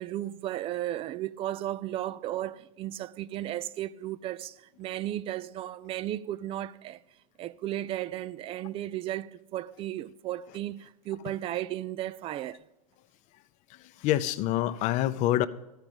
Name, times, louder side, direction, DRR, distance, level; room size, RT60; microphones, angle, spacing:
voice 1, 0.0-7.0 7.4-12.6, right 13 dB, 30° right, 0.4 m, -35 dB
voice 2, 13.7-15.5, left 13 dB, 40° left, 0.6 m, -27 dB
13.5 x 4.9 x 8.9 m
hypercardioid pair, 115°, 19 cm